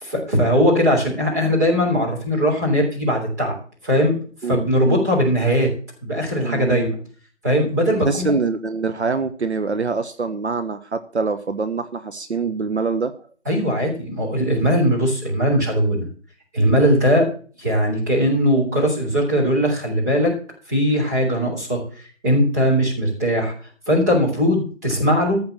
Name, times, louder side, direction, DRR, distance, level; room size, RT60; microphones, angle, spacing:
voice 1, 0.0-3.5 3.8-4.2 4.4-5.7 6.0-6.9 7.4-8.3 13.4-16.1 16.5-17.3 17.6-20.3 20.7-21.8 22.2-23.5 23.9-25.4, equal, 15° right, -3 dB, 3.2 m, -19 dB
voice 2, 4.4-5.1 6.4-6.9 8.0-13.2, right 4 dB, 65° right, 10 dB, 1.2 m, -24 dB
14.5 x 5.7 x 7.4 m, 0.42 s
figure-of-eight pair, 175°, 37 cm